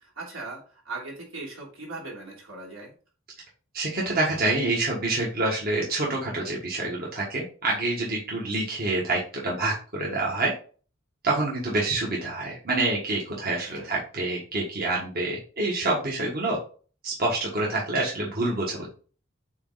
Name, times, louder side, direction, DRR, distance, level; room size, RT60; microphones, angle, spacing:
voice 1, 0.0-3.0 13.7-13.9, right 3 dB, 80° right, -2 dB, 3.0 m, -39 dB
voice 2, 3.7-10.5 11.2-16.6 17.0-18.9, right 2 dB, 50° right, -3 dB, 1.6 m, -27 dB
8.2 x 3.2 x 4.0 m, 0.39 s
head